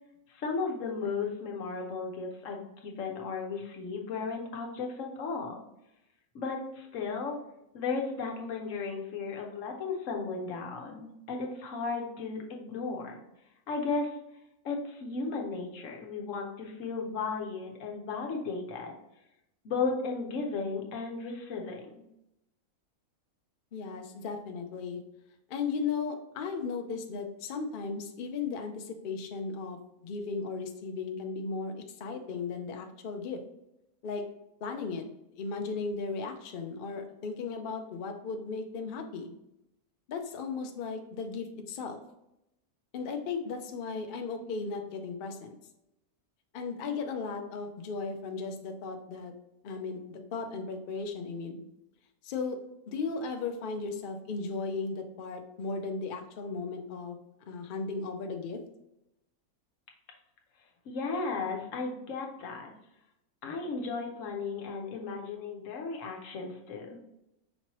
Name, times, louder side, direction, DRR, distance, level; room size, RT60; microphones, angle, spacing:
voice 1, 0.3-5.5 6.3-7.4 7.7-13.2 13.7-14.1 14.6-18.9 19.6-22.0 60.9-62.7 63.4-67.0, left 4 dB, 60° left, 1 dB, 1.1 m, -35 dB
voice 2, 23.7-25.0 25.5-29.8 30.0-33.4 34.0-34.2 34.6-35.1 35.4-39.3 40.1-42.0 42.9-45.6 46.5-49.3 49.6-51.6 52.2-52.6 52.9-57.2 57.5-58.6, left 4 dB, 90° left, 5 dB, 0.4 m, -36 dB
5.4 x 3.0 x 2.9 m, 0.86 s
omnidirectional pair, 1.6 m